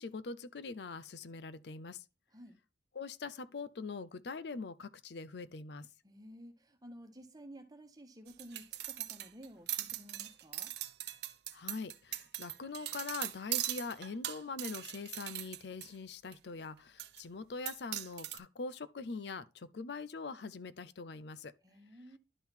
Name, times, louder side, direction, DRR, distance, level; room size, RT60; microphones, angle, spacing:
voice 1, 0.0-2.0 3.0-5.9 11.5-21.5, left 4 dB, 70° left, 0.5 m, -43 dB
voice 2, 6.0-10.7 21.6-22.2, equal, 20° right, 1.3 m, -53 dB
sound 1, 8.3-15.9 16.3-16.4 17.0-17.2 17.7-18.4, right 13 dB, 70° right, 0.7 m, -40 dB
11.0 x 3.8 x 4.3 m
head